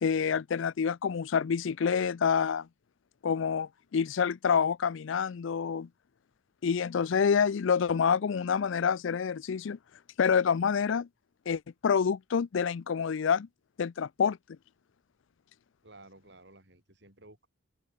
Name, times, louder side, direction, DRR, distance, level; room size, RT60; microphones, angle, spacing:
voice 1, 0.0-2.7 3.2-5.9 6.6-9.8 10.2-11.1 11.5-13.5 13.8-14.4, left 6 dB, 70° left, 0.4 m, -27 dB
voice 2, 15.8-17.5, right 2 dB, 55° right, 7.0 m, -54 dB
open air
head